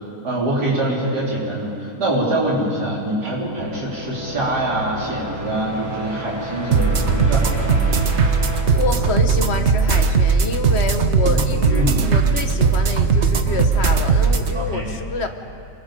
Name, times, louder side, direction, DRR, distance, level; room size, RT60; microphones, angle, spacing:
voice 1, 0.2-7.9 11.2-12.1 14.5-14.9, right 1 dB, 75° right, -5 dB, 4.8 m, -24 dB
sound 1, 2.7-10.4, equal, 15° left, 2.3 m, -33 dB
sound 2, 6.7-14.5, right 5 dB, 45° right, 1.3 m, -18 dB
voice 2, 8.7-15.3, left 4 dB, 45° left, 6 dB, 1.3 m, -27 dB
28.0 x 22.0 x 5.3 m, 2.6 s
omnidirectional pair, 1.8 m